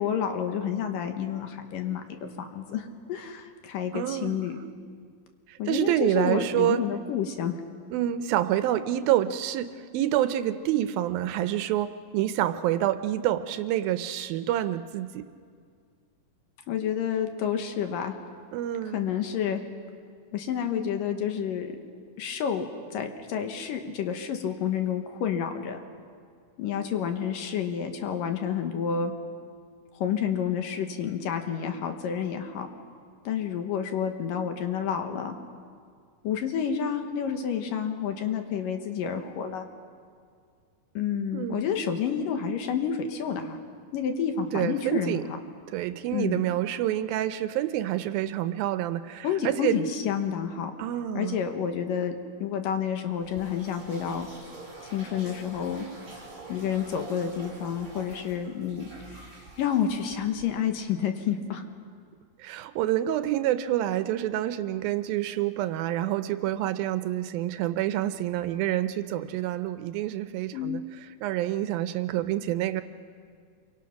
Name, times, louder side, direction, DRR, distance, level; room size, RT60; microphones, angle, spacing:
voice 1, 0.0-4.6 5.6-7.6 16.7-18.1 18.9-19.6 20.3-21.7 22.2-25.8 26.6-29.1 29.9-32.7 33.2-35.3 36.2-39.7 40.9-43.6 43.9-45.4 46.1-46.4 49.2-50.7 51.1-54.3 54.8-55.9 56.5-61.6 70.5-70.8, left 8 dB, 70° left, 6 dB, 2.7 m, -29 dB
voice 2, 3.9-4.4 5.5-6.8 7.9-15.3 18.5-19.1 41.3-41.7 44.5-45.2 45.7-49.8 50.8-51.4 62.4-70.8 71.2-72.8, right 13 dB, 80° right, 11 dB, 2.4 m, -27 dB
sound 1, 53.1-60.8, right 3 dB, 25° right, 4.7 m, -46 dB
27.0 x 24.0 x 5.9 m, 2.2 s
omnidirectional pair, 4.4 m